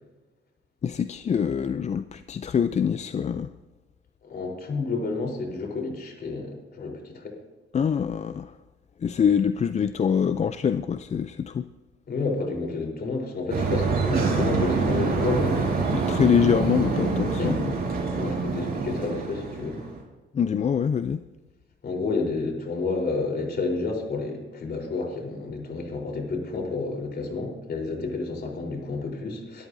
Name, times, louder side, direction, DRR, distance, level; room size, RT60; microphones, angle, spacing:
voice 1, 0.8-3.5 7.7-8.6 9.0-11.7 15.9-17.7 20.3-21.2, left 7 dB, 35° left, 11 dB, 0.5 m, -24 dB
voice 2, 4.2-7.4 12.1-15.7 17.4-17.6 18.1-19.8 21.8-29.7, left 3 dB, 55° left, 1 dB, 4.0 m, -30 dB
sound 1, 13.5-20.0, right 4 dB, 50° right, 5.4 m, -26 dB
25.0 x 13.0 x 2.7 m, 1.2 s
cardioid pair, 90°, 20 cm